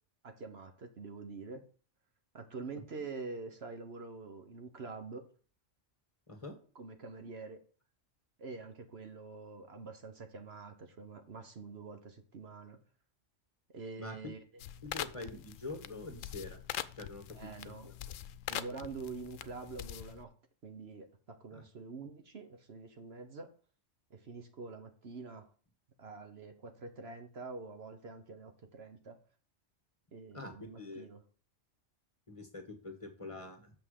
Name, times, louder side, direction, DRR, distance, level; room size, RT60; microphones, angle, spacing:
voice 1, 0.2-1.6 2.3-5.3 6.7-7.6 8.4-12.8 13.7-14.4 15.3-15.4 17.3-17.9 18.5-20.3 20.6-23.5 24.1-25.5 26.0-29.2 30.1-31.2, right 4 dB, 55° right, 6 dB, 1.2 m, -46 dB
voice 2, 14.0-14.4 14.8-16.6 16.9-17.2 17.6-18.1 21.5-21.6 30.3-31.1 32.3-33.7, left 2 dB, 25° left, 4 dB, 1.5 m, -45 dB
sound 1, 14.6-20.2, left 11 dB, 90° left, 1.0 m, -43 dB
6.8 x 5.8 x 6.5 m, 0.42 s
omnidirectional pair, 1.3 m